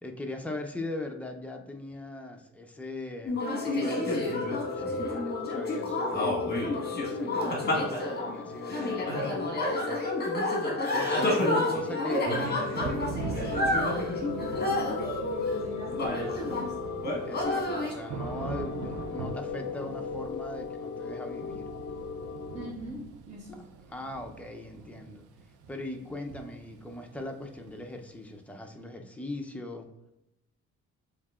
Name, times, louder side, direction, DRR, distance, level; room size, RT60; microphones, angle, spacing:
voice 1, 0.0-10.0 10.9-12.2 12.6-12.9 17.3-21.7 23.9-25.3 25.7-29.9, left 2 dB, 5° left, 3 dB, 0.5 m, -40 dB
sound 1, 3.3-16.7 17.0-17.9, left 1 dB, 35° left, 1.4 m, -30 dB
sound 2, 3.4-22.7, left 5 dB, 65° left, 0.5 m, -37 dB
voice 2, 11.3-17.0 22.5-23.6, equal, 20° right, -7 dB, 1.3 m, -42 dB
Thunder / Rain, 12.3-28.1, right 5 dB, 85° right, 0.6 m, -42 dB
7.0 x 2.8 x 2.4 m, 0.89 s
cardioid pair, 90°, 30 cm